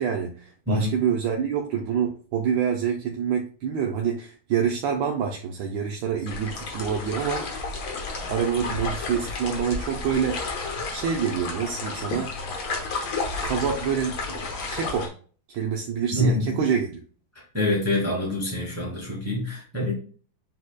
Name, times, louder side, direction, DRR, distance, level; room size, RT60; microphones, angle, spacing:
voice 1, 0.0-7.4 7.9-8.0 8.3-10.4 10.9-12.3 13.4-14.4 14.7-15.1 15.5-17.0, right 7 dB, 75° right, 1 dB, 1.3 m, -26 dB
sound 1, 6.3-15.1, left 3 dB, 85° left, 1.9 m, -32 dB
voice 2, 16.1-16.6 17.3-19.9, left 1 dB, 20° right, -2 dB, 0.4 m, -26 dB
7.5 x 2.7 x 2.2 m, 0.41 s
omnidirectional pair, 2.2 m